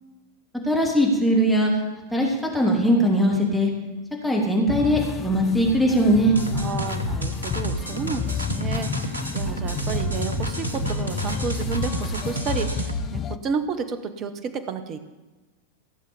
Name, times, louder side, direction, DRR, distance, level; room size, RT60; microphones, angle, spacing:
voice 1, 0.6-1.7 2.1-3.7 4.2-6.4, equal, ahead, -2 dB, 3.2 m, -20 dB
sound 1, 4.7-13.4, left 8 dB, 25° left, 0.6 m, -31 dB
sound 2, 6.4-13.1, right 3 dB, 80° right, 1.2 m, -30 dB
voice 2, 6.5-15.0, right 5 dB, 30° right, 10 dB, 1.2 m, -31 dB
16.5 x 7.5 x 7.2 m, 1.2 s
figure-of-eight pair, 90°, 0 cm